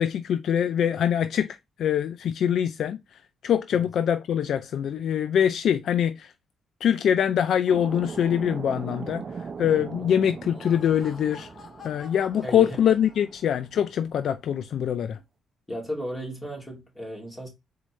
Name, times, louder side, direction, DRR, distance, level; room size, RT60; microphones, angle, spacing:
voice 1, 0.0-3.0 3.4-6.3 6.8-11.5 11.8-15.2, left 9 dB, 65° left, 0.4 m, -24 dB
sound 1, 7.7-14.0, right 5 dB, 40° right, 0.7 m, -39 dB
Laughter, 10.3-13.6, left 4 dB, 45° left, 1.4 m, -48 dB
voice 2, 12.4-12.8 15.7-17.5, equal, 15° left, 2.7 m, -35 dB
4.2 x 3.8 x 3.1 m
cardioid pair, 90°, 0 cm